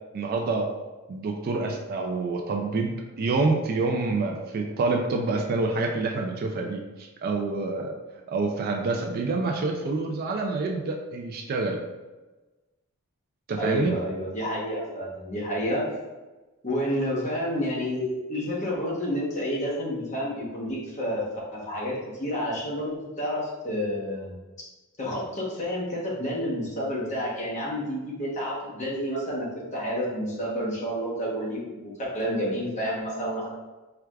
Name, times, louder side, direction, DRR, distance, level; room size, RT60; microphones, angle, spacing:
voice 1, 0.1-0.7 1.1-7.9 8.3-11.8 13.5-13.9, right 3 dB, 45° right, 2 dB, 0.3 m, -27 dB
voice 2, 13.5-15.8 16.6-21.3 21.5-24.4 25.0-29.5 29.7-33.5, equal, 35° left, -5 dB, 0.9 m, -29 dB
4.5 x 2.4 x 2.2 m, 1.2 s
head